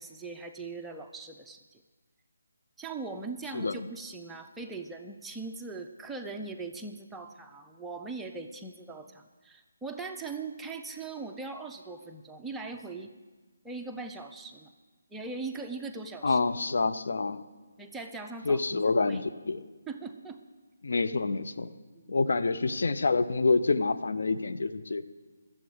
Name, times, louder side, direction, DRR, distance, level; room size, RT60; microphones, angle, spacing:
voice 1, 0.0-1.8 2.8-13.1 13.6-14.7 15.1-16.4 17.8-19.2 19.9-20.4 21.9-22.1, right 3 dB, 5° right, 3 dB, 0.6 m, -40 dB
voice 2, 3.5-3.9 16.2-17.4 18.4-19.6 20.8-21.7 22.1-25.0, left 3 dB, 60° left, 9 dB, 0.7 m, -27 dB
12.5 x 7.6 x 7.9 m, 1.3 s
figure-of-eight pair, 150°, 0 cm